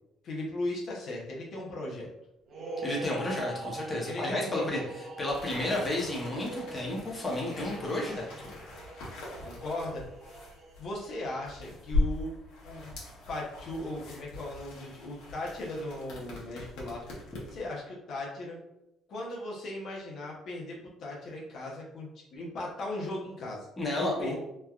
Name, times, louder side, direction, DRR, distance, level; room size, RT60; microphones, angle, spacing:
voice 1, 0.2-2.1 4.1-4.9 9.4-10.0 10.8-12.3 12.6-12.9 13.3-17.0 17.5-18.6 19.1-23.7 23.9-24.4, left 2 dB, 60° left, -3 dB, 0.7 m, -37 dB
sound 1, 2.5-11.0, right 2 dB, 55° right, 0.7 m, -43 dB
voice 2, 2.8-4.8 5.2-8.3 23.8-24.4, left 1 dB, 20° left, -3 dB, 0.8 m, -32 dB
sound 2, 5.3-17.7, left 2 dB, 85° left, 0.9 m, -39 dB
3.2 x 2.3 x 2.3 m, 0.86 s
cardioid pair, 110°, 0 cm